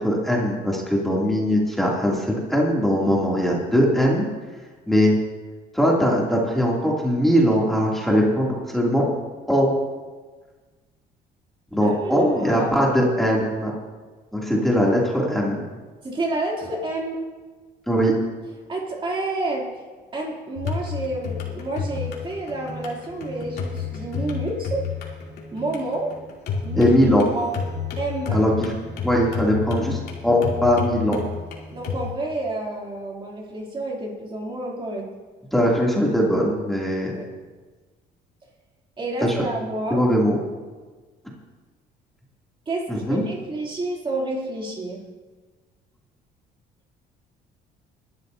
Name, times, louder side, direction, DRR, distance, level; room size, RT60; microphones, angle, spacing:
voice 1, 0.0-4.3 4.9-5.2 5.7-9.0 9.5-9.7 11.7-13.7 14.3-15.6 17.9-18.1 26.8-27.3 28.3-28.7 29.0-31.2 35.5-37.1 39.2-39.5 39.9-40.4 42.9-43.2, equal, ahead, -4 dB, 2.7 m, -20 dB
voice 2, 11.8-12.9 16.0-17.2 18.7-19.7 20.1-24.8 25.5-26.1 26.6-26.9 27.3-27.6 28.0-28.4 31.7-35.1 37.1-37.2 39.0-40.0 42.7-45.0, right 2 dB, 30° right, -2 dB, 3.0 m, -29 dB
sound 1, 20.6-32.1, left 6 dB, 70° left, 3.0 m, -31 dB
21.5 x 12.0 x 2.7 m, 1.4 s
cardioid pair, 110°, 17 cm